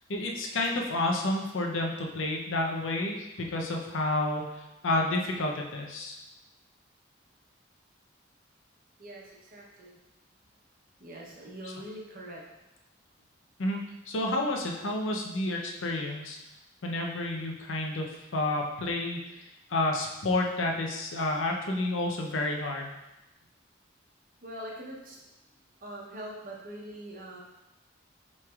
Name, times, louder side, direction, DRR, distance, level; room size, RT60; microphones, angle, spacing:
voice 1, 0.1-4.4 4.8-6.2 13.6-13.8 14.1-16.4 16.8-19.2 19.7-22.9, left 2 dB, 85° left, 1 dB, 0.6 m, -30 dB
voice 2, 9.0-10.0 11.0-12.4 24.4-25.2 25.8-27.4, right 1 dB, 45° right, -2 dB, 0.8 m, -43 dB
5.9 x 3.2 x 2.4 m, 0.98 s
head